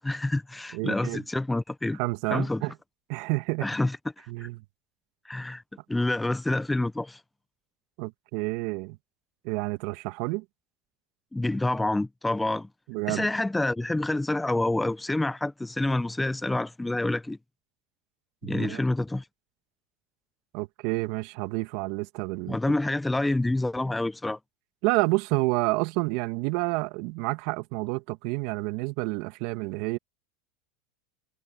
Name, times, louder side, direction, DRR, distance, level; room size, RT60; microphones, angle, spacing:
voice 1, 0.0-2.0 2.3-2.6 3.6-4.5 5.2-5.6 5.9-7.2 11.3-12.7 13.1-17.4 18.4-19.2 22.5-24.4, left 2 dB, 10° left, 0.8 m, -27 dB
voice 2, 0.7-1.2 2.0-2.7 3.1-3.7 4.3-4.6 8.0-9.0 9.4-10.4 12.9-13.3 18.4-18.8 20.5-22.6 24.8-30.0, right 24 dB, 60° right, 2.3 m, -29 dB
hypercardioid pair, 95°, 0 cm